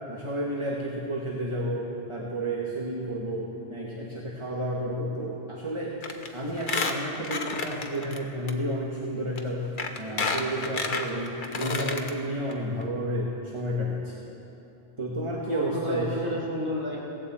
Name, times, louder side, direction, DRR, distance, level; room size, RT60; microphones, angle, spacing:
voice 1, 0.1-6.0 6.3-9.7 10.0-14.1 15.0-16.2, right 1 dB, 25° right, -2 dB, 1.3 m, -31 dB
Squeak, 6.0-6.3 6.6-8.2 8.5-8.6 9.4-9.5 9.8-12.1 12.5-12.6 12.8-12.9, left 4 dB, 45° left, 1.1 m, -30 dB
voice 2, 15.1-17.1, equal, 10° right, -6 dB, 3.6 m, -32 dB
17.5 x 15.5 x 4.2 m, 2.9 s
omnidirectional pair, 1.2 m